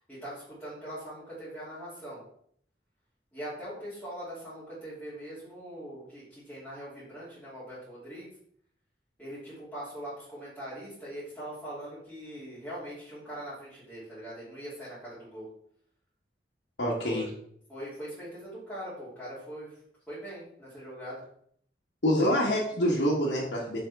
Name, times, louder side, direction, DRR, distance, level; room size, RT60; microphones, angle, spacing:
voice 1, 0.1-2.2 3.3-8.3 9.2-15.5 17.0-17.3 17.7-19.8 20.1-21.2, right 1 dB, 5° left, -13 dB, 2.8 m, -41 dB
voice 2, 16.8-17.3 22.0-23.8, equal, 80° left, -6 dB, 1.4 m, -26 dB
7.0 x 4.7 x 3.5 m, 0.66 s
head